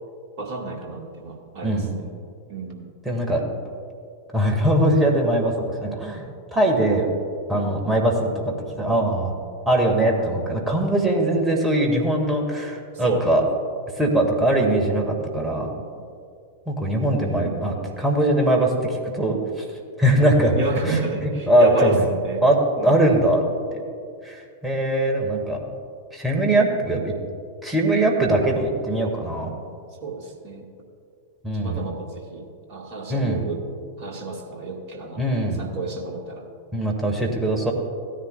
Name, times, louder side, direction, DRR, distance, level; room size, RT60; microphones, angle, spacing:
voice 1, 0.4-2.1 2.5-2.9 7.5-7.8 12.9-13.2 20.5-22.4 22.8-23.0 26.3-26.5 30.0-30.7 31.5-33.6 34.0-35.2 35.6-36.5, right 2 dB, 45° right, 1 dB, 1.8 m, -30 dB
voice 2, 1.6-1.9 3.1-3.4 4.3-6.3 6.5-7.1 7.5-9.3 9.7-13.4 14.0-15.7 16.7-19.7 20.0-20.6 20.8-22.1 22.4-22.6 22.8-23.4 23.7-23.8 24.2-25.6 26.1-27.1 27.6-29.5 31.4-31.9 33.1-33.4 35.2-35.7 36.7-37.7, right 1 dB, 10° right, 0 dB, 2.0 m, -21 dB
17.0 x 10.0 x 2.4 m, 2.2 s
figure-of-eight pair, 90°, 0 cm